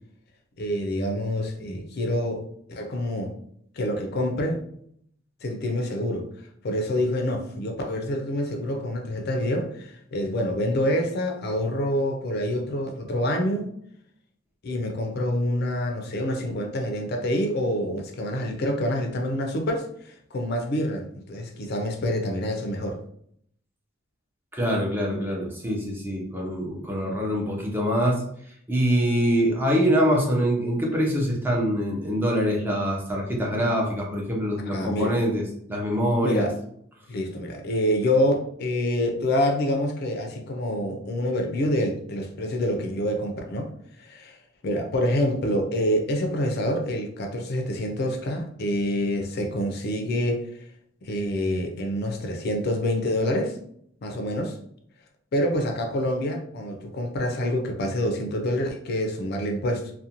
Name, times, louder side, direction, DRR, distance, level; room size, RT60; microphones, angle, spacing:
voice 1, 0.6-2.4 2.7-3.4 3.8-4.6 5.4-6.3 6.6-13.7 14.6-23.0 34.7-35.2 36.2-36.5 37.1-43.7 44.0-44.4 44.6-50.5 51.0-53.6 54.0-54.6 55.3-59.9, left 1 dB, 55° left, 3 dB, 0.4 m, -27 dB
voice 2, 24.5-28.2 28.7-36.5, equal, 10° right, -1 dB, 0.6 m, -24 dB
2.5 x 2.1 x 2.8 m, 0.68 s
head